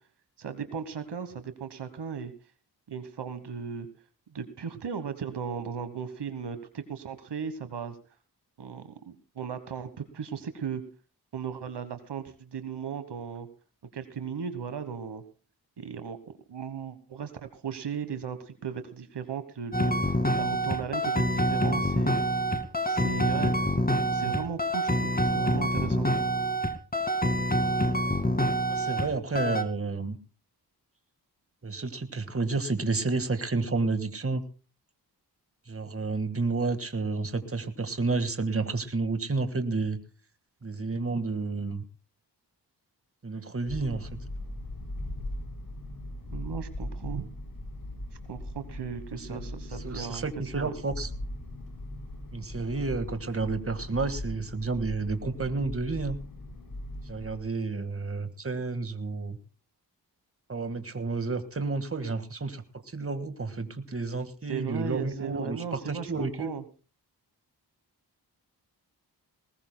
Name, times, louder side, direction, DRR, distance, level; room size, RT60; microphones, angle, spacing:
voice 1, 0.4-2.3 2.9-3.9 4.3-8.0 8.6-10.8 11.3-13.5 13.9-15.2 15.8-16.2 16.5-19.9 20.4-22.2 22.9-23.5 24.1-26.1 46.3-47.3 48.3-50.2 50.5-50.7 64.5-66.6, right 7 dB, 75° right, 10 dB, 1.3 m, -36 dB
sound 1, 19.7-29.1 29.4-29.6, equal, 20° left, 2.0 m, -26 dB
voice 2, 28.7-30.2 31.6-34.4 35.7-40.0 40.6-41.8 43.2-44.2 49.2-49.4 49.8-51.1 52.3-56.2 57.1-59.4 60.5-66.5, right 3 dB, 35° right, 10 dB, 1.7 m, -31 dB
sound 2, 43.7-57.4, left 1 dB, 60° left, 3.9 m, -39 dB
20.0 x 19.0 x 2.2 m, 0.36 s
cardioid pair, 65°, 41 cm